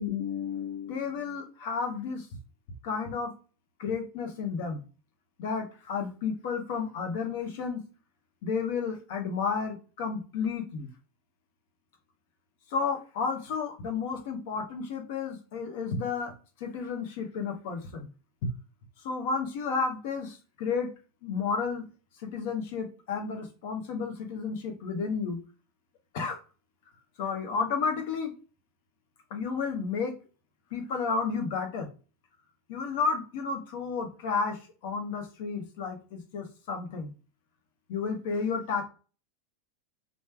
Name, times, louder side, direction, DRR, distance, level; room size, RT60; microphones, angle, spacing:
voice 1, 0.0-2.3 2.8-3.3 3.8-4.8 5.4-7.8 8.4-10.9 12.7-16.3 16.6-18.1 18.4-18.5 19.0-20.9 21.2-21.8 22.2-25.4 26.1-26.4 27.2-28.3 29.3-30.1 30.7-31.9 32.7-37.1 37.9-38.8, left 5 dB, 55° left, 4 dB, 0.8 m, -32 dB
3.2 x 2.1 x 4.3 m, 0.35 s
figure-of-eight pair, 85°, 0 cm